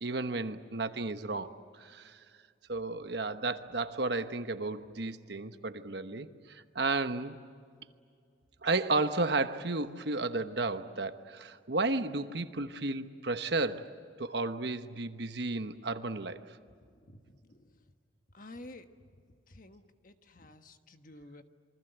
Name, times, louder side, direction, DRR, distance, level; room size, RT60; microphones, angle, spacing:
voice 1, 0.0-2.2 2.7-7.4 8.6-13.9 14.2-16.4, right 3 dB, 60° right, 9 dB, 1.1 m, -33 dB
voice 2, 16.8-17.7 18.3-18.9 19.5-21.4, left 1 dB, 45° left, 7 dB, 1.3 m, -51 dB
27.5 x 24.5 x 8.0 m, 2.2 s
head